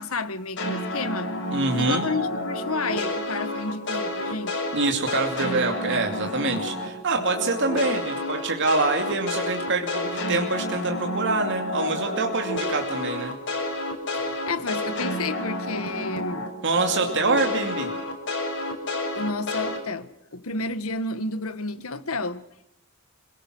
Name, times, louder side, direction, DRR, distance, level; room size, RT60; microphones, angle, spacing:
voice 1, 0.0-1.3 1.8-4.6 14.1-16.5 19.1-22.4, left 3 dB, 75° left, 12 dB, 1.6 m, -31 dB
sound 1, 0.6-6.9 7.2-16.5 16.8-19.8, left 1 dB, 60° left, 6.9 m, -30 dB
voice 2, 1.5-2.0 4.7-13.3 16.6-17.9, right 3 dB, 60° right, 3 dB, 2.6 m, -25 dB
28.5 x 18.0 x 6.3 m, 0.80 s
head